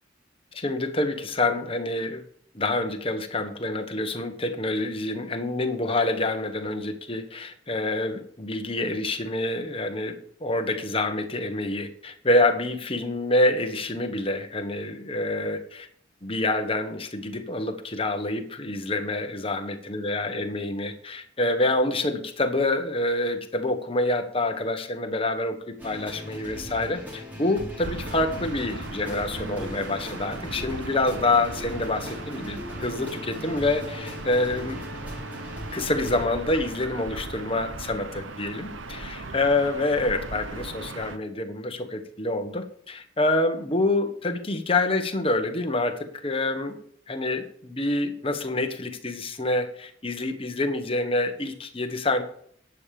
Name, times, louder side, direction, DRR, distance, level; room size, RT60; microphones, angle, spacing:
voice 1, 0.5-2.2 2.5-15.9 16.2-34.8 35.7-46.0 46.2-46.8 47.1-52.2, left 2 dB, 30° left, 6 dB, 1.4 m, -27 dB
sound 1, 25.8-36.3, left 1 dB, 10° right, 3.3 m, -39 dB
Gull seagull / Ocean, 27.8-41.2, right 3 dB, 85° right, 1.0 m, -38 dB
11.0 x 8.4 x 7.0 m, 0.63 s
head